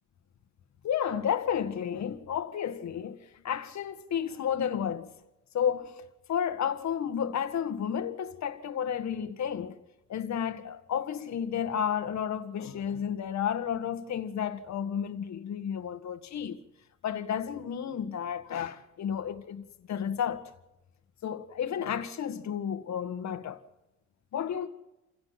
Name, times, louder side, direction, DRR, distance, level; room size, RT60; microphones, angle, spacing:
voice 1, 0.8-5.1 5.5-9.8 10.1-16.6 17.0-20.4 21.2-23.6 24.3-24.7, left 8 dB, 65° left, 1.9 m, -32 dB
27.5 x 17.0 x 6.0 m
cardioid pair, 90°, 30 cm